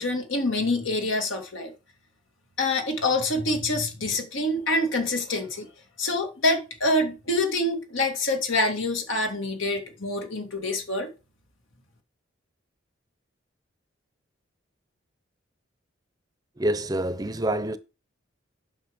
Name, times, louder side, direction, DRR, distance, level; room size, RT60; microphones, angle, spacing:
voice 1, 0.0-1.7 2.6-5.7 6.0-11.1, left 2 dB, 85° left, 2.2 m, -26 dB
voice 2, 16.6-17.8, right 1 dB, 20° right, 0.6 m, -26 dB
8.8 x 5.8 x 5.0 m
head